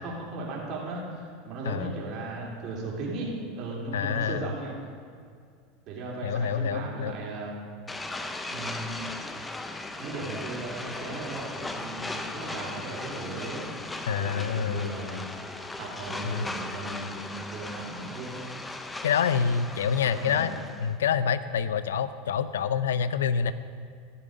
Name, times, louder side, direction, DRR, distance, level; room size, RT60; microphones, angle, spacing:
voice 1, 0.0-4.7 5.9-7.6 8.5-9.1 10.0-13.7 14.1-15.3 15.8-18.4 20.0-20.4, right 2 dB, 50° right, -3 dB, 3.3 m, -36 dB
voice 2, 3.9-4.5 6.2-7.2 14.0-14.9 16.2-16.5 19.0-20.5 20.8-23.5, left 7 dB, 90° left, 14 dB, 0.5 m, -27 dB
sound 1, 7.9-20.9, left 2 dB, 10° left, 0.7 m, -37 dB
14.5 x 7.0 x 5.2 m, 2.2 s
hypercardioid pair, 105°, 0 cm